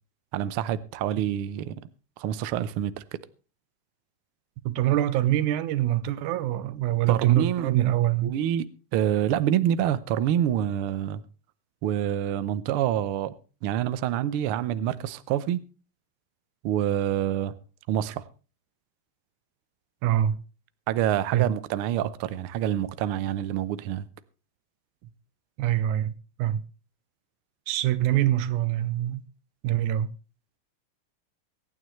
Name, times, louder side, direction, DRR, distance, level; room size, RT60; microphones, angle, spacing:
voice 1, 0.3-1.8 2.2-2.9 7.1-7.7 8.2-8.7 8.9-11.2 11.8-13.3 13.6-15.6 16.6-17.5 17.9-18.2 20.9-24.1, right 11 dB, 70° right, 1.3 m, -27 dB
voice 2, 4.7-8.4 20.0-20.4 21.3-21.5 25.6-26.1 26.4-26.6 27.7-29.3 29.6-30.1, right 12 dB, 90° right, 2.3 m, -24 dB
24.0 x 9.3 x 3.1 m
omnidirectional pair, 3.3 m